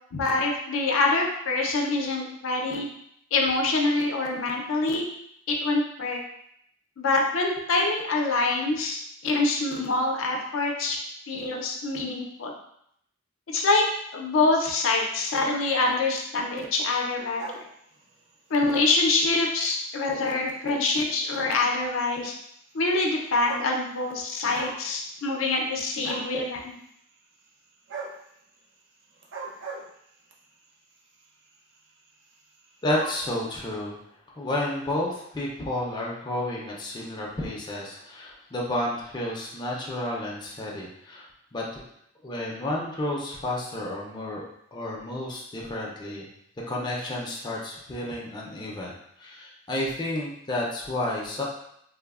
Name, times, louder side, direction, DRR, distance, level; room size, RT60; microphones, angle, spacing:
voice 1, 0.1-2.9 3.3-5.0 5.5-6.2 7.0-9.0 9.2-11.0 11.3-12.5 13.5-13.8 14.1-17.4 18.5-22.3 22.7-26.8, left 3 dB, 85° left, 1 dB, 0.4 m, -25 dB
sound 1, 17.2-18.3 18.9-19.2 20.0-20.1 20.3-20.4 20.7-20.8 21.9-22.0 23.0-23.1 23.3-24.1 24.4-24.9 25.2-25.8 26.0-26.4 27.9-28.2 29.2-30.4 31.2-31.5 31.8-31.9 32.1-32.2 32.4-33.2, right 3 dB, 65° right, 0.4 m, -38 dB
voice 2, 32.8-34.0 34.3-41.8 42.2-44.5 44.7-46.3 46.7-51.4, left 1 dB, 20° left, -3 dB, 0.4 m, -31 dB
3.0 x 2.0 x 2.3 m, 0.73 s
head